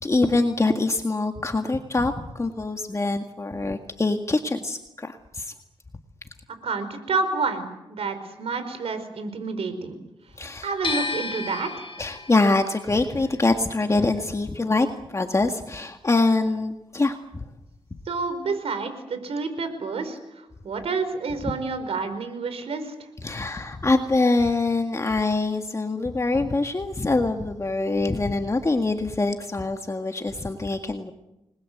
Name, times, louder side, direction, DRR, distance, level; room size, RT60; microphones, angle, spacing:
voice 1, 0.0-5.5 10.4-10.7 12.0-17.2 23.2-31.1, left 3 dB, 30° left, 5 dB, 1.9 m, -24 dB
voice 2, 6.6-9.9 10.6-11.9 18.0-22.9, right 4 dB, 80° right, 10 dB, 4.8 m, -29 dB
sound 1, 10.8-16.9 17.1-18.4, left 4 dB, 55° left, 7.6 m, -35 dB
29.5 x 21.0 x 8.0 m, 0.93 s
cardioid pair, 80°, 10 cm